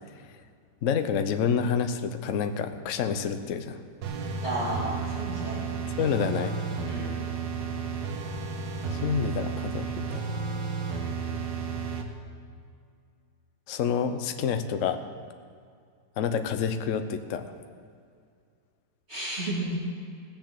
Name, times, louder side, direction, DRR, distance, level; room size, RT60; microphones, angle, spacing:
voice 1, 0.8-3.8 6.0-6.6 8.9-10.2 13.7-15.0 16.2-17.5, left 7 dB, 55° left, 8 dB, 0.9 m, -28 dB
sound 1, 4.0-12.0, right 5 dB, 75° right, 1.8 m, -32 dB
voice 2, 4.4-6.0 6.8-7.2 19.1-19.8, right 1 dB, 35° right, -6 dB, 2.8 m, -33 dB
17.5 x 7.1 x 7.5 m, 2.3 s
omnidirectional pair, 2.0 m